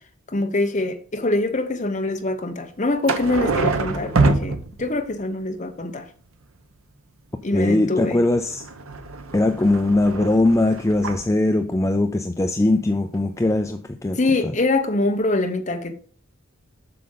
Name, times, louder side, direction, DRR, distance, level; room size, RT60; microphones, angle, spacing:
voice 1, 0.3-6.1 7.4-8.2 14.2-15.9, left 2 dB, 35° left, 1.0 m, -24 dB
sound 1, 3.1-5.2 8.1-11.3 13.1-13.2 13.4-13.6, right 3 dB, 75° right, 0.9 m, -25 dB
voice 2, 7.5-8.6 9.3-14.2, left 2 dB, 15° left, 0.4 m, -20 dB
7.7 x 6.5 x 3.9 m
head